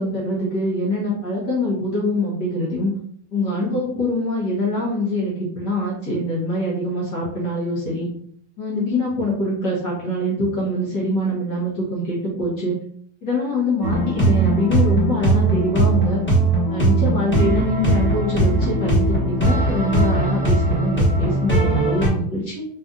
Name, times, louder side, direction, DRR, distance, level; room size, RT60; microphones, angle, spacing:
voice 1, 0.0-2.9 3.3-8.1 8.6-12.8 13.2-16.2 16.7-22.7, left 1 dB, 65° left, -6 dB, 1.7 m, -24 dB
sound 1, 13.8-22.1, right 2 dB, 10° left, 0.5 m, -19 dB
4.1 x 2.5 x 3.5 m, 0.66 s
omnidirectional pair, 2.1 m